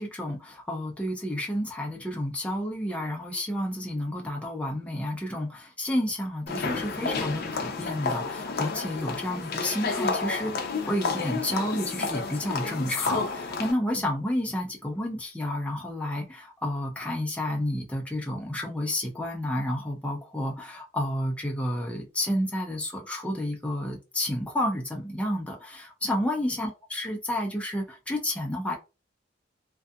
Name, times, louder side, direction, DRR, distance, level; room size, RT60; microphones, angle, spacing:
voice 1, 0.0-28.7, left 1 dB, 5° left, 0.5 m, -30 dB
sound 1, 6.5-13.7, left 4 dB, 55° left, 0.5 m, -31 dB
2.6 x 2.3 x 2.3 m
head